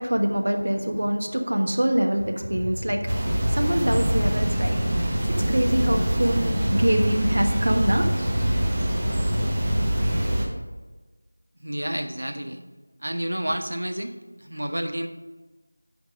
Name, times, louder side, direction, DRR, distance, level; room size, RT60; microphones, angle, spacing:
voice 1, 0.0-3.1 3.5-5.2 5.5-8.1, right 1 dB, 70° right, 3 dB, 1.2 m, -24 dB
sound 1, 2.1-6.3 7.1-7.9 8.2-9.1, equal, 5° left, 1.9 m, -37 dB
sound 2, 3.1-10.5, right 1 dB, 15° right, 0.8 m, -24 dB
voice 2, 11.6-12.7 13.0-15.1, right 1 dB, 90° right, 6 dB, 1.0 m, -30 dB
9.3 x 5.2 x 5.1 m, 1.2 s
figure-of-eight pair, 175°, 0 cm